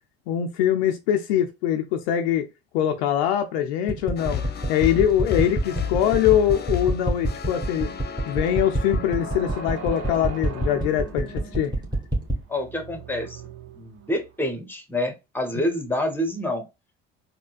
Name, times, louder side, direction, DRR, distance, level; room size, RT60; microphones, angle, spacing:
voice 1, 0.3-2.5 2.7-4.4 4.7-7.9 8.3-11.7, left 10 dB, 75° left, 0.5 m, -23 dB
sound 1, 3.9-12.4, right 1 dB, 15° right, 1.3 m, -26 dB
sound 2, 4.2-12.3, left 7 dB, 30° left, 0.8 m, -35 dB
sound 3, 8.4-14.4, right 7 dB, 55° right, 0.9 m, -42 dB
voice 2, 12.5-13.4 13.8-16.6, left 1 dB, 5° left, 1.0 m, -27 dB
4.2 x 2.2 x 2.3 m
hypercardioid pair, 60°, 32 cm